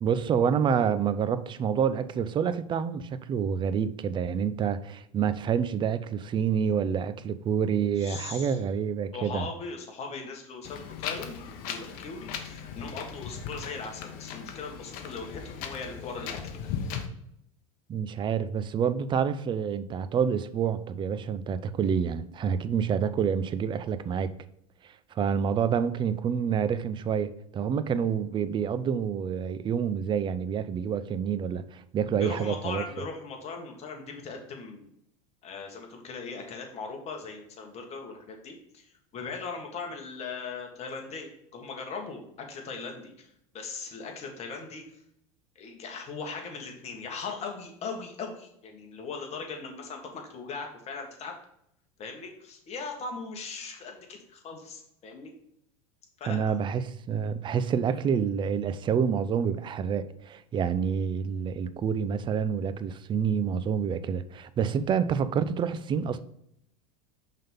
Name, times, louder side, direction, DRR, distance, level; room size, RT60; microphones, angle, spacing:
voice 1, 0.0-9.5 17.9-24.3 24.8-32.8 56.2-66.2, right 7 dB, 25° right, 0.5 m, -28 dB
voice 2, 8.0-8.6 9.1-16.6 32.2-34.9 35.4-43.3 43.5-44.8 45.5-51.3 52.0-55.3 56.2-56.5, left 4 dB, 35° left, 1.7 m, -39 dB
Wind, 10.6-17.1, left 7 dB, 60° left, 0.9 m, -38 dB
5.4 x 3.7 x 5.5 m
supercardioid pair, 105°, 18 cm